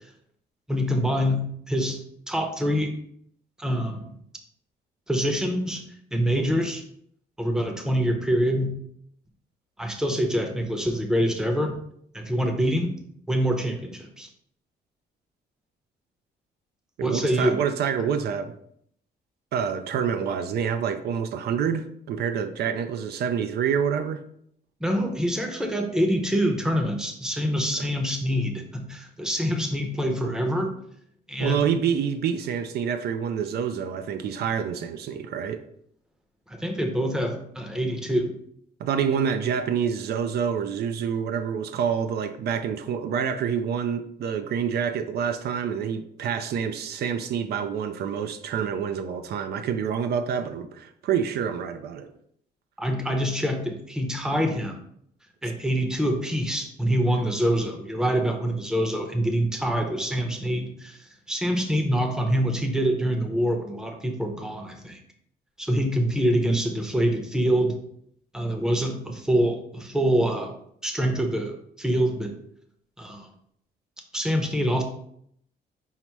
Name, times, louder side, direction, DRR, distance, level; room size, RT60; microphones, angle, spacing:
voice 1, 0.7-2.0 2.3-2.9 3.6-4.1 5.1-5.8 6.1-6.8 7.4-8.7 9.8-11.7 12.1-13.0 13.3-14.3 17.0-17.6 24.8-30.7 31.3-31.7 36.5-38.3 52.8-54.8 55.4-65.0 65.6-67.8 68.3-70.6 70.8-72.3 73.0-73.3 74.1-74.8, equal, 5° right, 4 dB, 0.7 m, -25 dB
voice 2, 17.0-18.5 19.5-24.2 31.4-35.6 38.8-52.1, right 7 dB, 70° right, 8 dB, 0.4 m, -27 dB
5.6 x 2.0 x 4.5 m, 0.69 s
cardioid pair, 125°, 17 cm